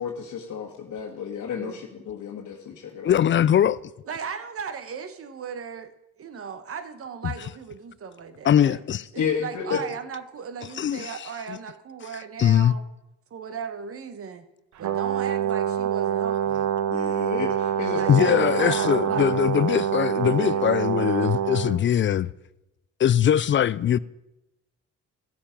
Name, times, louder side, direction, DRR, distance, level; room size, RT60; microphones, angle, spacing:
voice 1, 0.0-3.2 9.1-9.8 16.9-18.5 18.9-19.4 20.3-20.8, left 7 dB, 65° left, 1.5 m, -32 dB
voice 2, 3.0-3.8 7.2-7.3 8.4-9.1 9.7-9.8 10.8-11.2 11.5-11.6 12.4-12.7 17.0-17.1 18.1-22.3 23.0-24.0, left 10 dB, 40° left, 0.4 m, -21 dB
voice 3, 4.0-5.9 6.2-8.8 9.1-12.8 13.3-14.5 14.8-16.7 18.0-19.3, right 6 dB, 50° right, 1.2 m, -36 dB
Brass instrument, 14.8-21.8, right 10 dB, 65° right, 0.9 m, -26 dB
15.5 x 7.1 x 5.1 m
cardioid pair, 90°, 30 cm